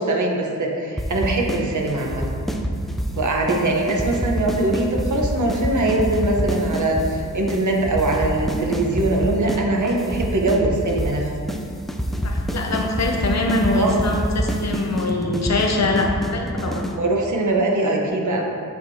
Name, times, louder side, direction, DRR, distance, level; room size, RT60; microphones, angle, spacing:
voice 1, 0.0-2.2 3.2-11.2 13.7-14.0 16.7-18.4, right 2 dB, 65° right, 0 dB, 1.0 m, -22 dB
sound 1, 1.0-1.6 1.9-3.2 3.5-3.6 3.9-7.1 7.5-7.6 7.9-9.6 9.9-11.2 11.5-11.6 11.9-17.0, equal, ahead, 0.4 m, -26 dB
voice 2, 12.2-16.8, left 2 dB, 55° left, 1 dB, 0.7 m, -23 dB
8.2 x 4.6 x 2.8 m, 2.4 s
wide cardioid pair, 105°, 32 cm